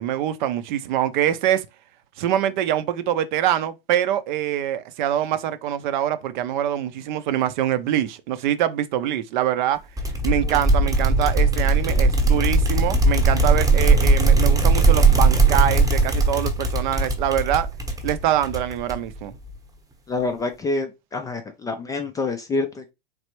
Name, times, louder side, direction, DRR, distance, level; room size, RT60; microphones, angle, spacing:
voice 1, 0.0-1.7 2.2-9.8 10.2-17.7 18.0-19.3, right 11 dB, 50° right, 0.6 m, -24 dB
sound 1, 10.0-19.2, right 3 dB, 10° right, 0.9 m, -19 dB
voice 2, 20.1-22.9, left 3 dB, 10° left, 0.4 m, -27 dB
4.0 x 3.3 x 3.0 m
hypercardioid pair, 105°, 32 cm